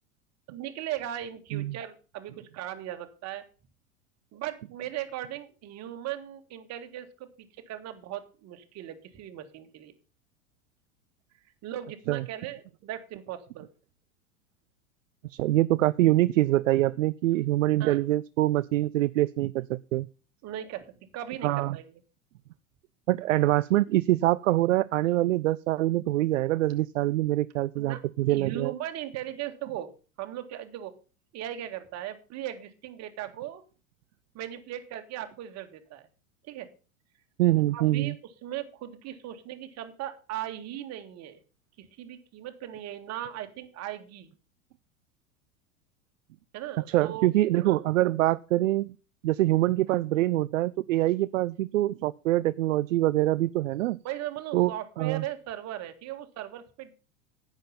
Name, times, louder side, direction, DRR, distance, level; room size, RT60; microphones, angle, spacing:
voice 1, 0.5-3.5 4.3-9.9 11.6-13.7 17.8-18.0 20.4-20.9 21.1-21.9 27.8-28.0 28.3-29.9 30.2-30.9 31.3-33.6 34.3-36.1 36.4-36.7 37.7-38.2 38.4-41.4 41.8-44.3 46.5-47.3 47.6-47.8 54.0-56.9, right 12 dB, 40° right, 7 dB, 2.1 m, -38 dB
voice 2, 15.3-20.1 21.4-21.8 23.1-28.7 37.4-38.1 46.9-48.9 49.2-54.0 54.5-55.2, right 16 dB, 65° right, 17 dB, 0.5 m, -25 dB
10.5 x 9.0 x 5.8 m, 0.35 s
figure-of-eight pair, 90°, 41 cm